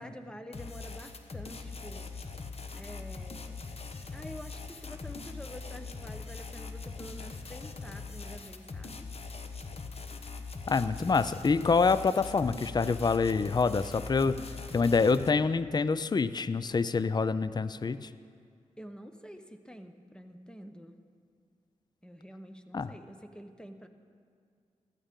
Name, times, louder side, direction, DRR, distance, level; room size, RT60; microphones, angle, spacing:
voice 1, 0.0-2.1 2.7-3.7 4.1-9.1 18.8-21.0 22.0-23.9, equal, 5° left, 7 dB, 1.0 m, -47 dB
sound 1, 0.5-15.3, left 4 dB, 50° left, 1.0 m, -42 dB
voice 2, 10.7-14.4 14.7-18.1 22.7-22.9, left 4 dB, 30° left, 15 dB, 0.4 m, -26 dB
15.5 x 13.0 x 3.7 m, 2.2 s
cardioid pair, 50°, 13 cm